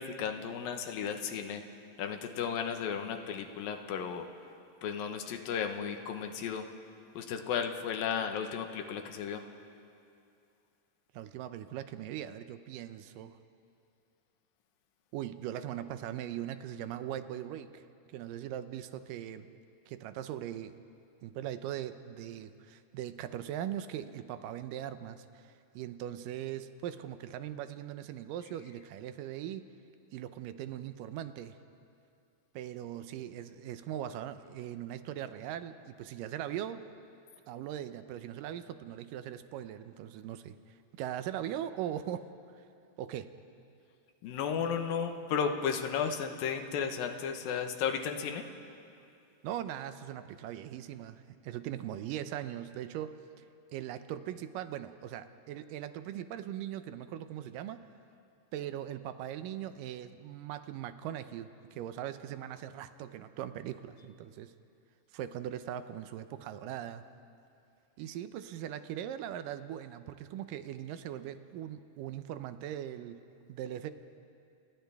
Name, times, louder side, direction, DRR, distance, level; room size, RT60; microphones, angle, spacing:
voice 1, 0.0-1.6 2.0-4.3 4.8-6.7 7.1-9.5 44.2-48.5, left 7 dB, 85° left, 6 dB, 2.9 m, -34 dB
voice 2, 11.1-13.4 15.1-17.8 18.1-19.5 19.9-20.8 21.2-29.7 30.1-31.6 32.6-36.9 37.5-40.6 40.9-42.3 43.0-43.3 49.4-53.4 53.7-57.9 58.5-64.5 65.1-67.0 68.0-73.2 73.5-73.9, right 11 dB, 80° right, 11 dB, 2.3 m, -40 dB
29.5 x 28.0 x 3.5 m, 2.5 s
omnidirectional pair, 4.0 m